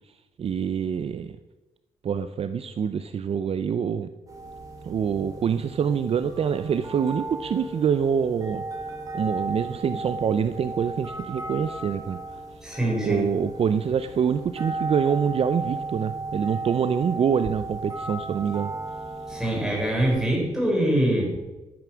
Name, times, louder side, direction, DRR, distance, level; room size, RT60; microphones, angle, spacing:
voice 1, 0.4-1.4 2.0-4.1 4.8-8.6 9.1-12.2 13.0-18.7, right 7 dB, 45° right, 11 dB, 0.5 m, -25 dB
sound 1, 4.3-20.3, right 2 dB, 25° right, 2.9 m, -35 dB
voice 2, 12.6-13.2 19.3-21.4, right 1 dB, 5° right, -3 dB, 5.7 m, -24 dB
12.5 x 9.3 x 6.2 m, 1.1 s
cardioid pair, 130°, 14 cm